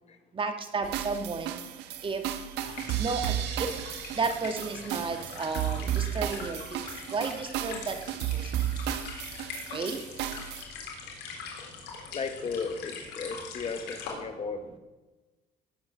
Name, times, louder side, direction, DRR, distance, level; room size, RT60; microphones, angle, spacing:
voice 1, 0.4-1.6 2.0-2.2 3.0-3.3 3.6-3.7 4.2-6.8 7.1-8.0 9.7-10.0, right 4 dB, 30° right, 6 dB, 1.8 m, -32 dB
sound 1, 0.8-10.6, right 11 dB, 90° right, 1.3 m, -34 dB
sound 2, 2.6-14.1, left 5 dB, 90° left, 3.9 m, -43 dB
voice 2, 12.1-14.8, left 4 dB, 40° left, 8 dB, 1.6 m, -35 dB
18.5 x 7.8 x 7.4 m, 1.2 s
cardioid pair, 110°, 17 cm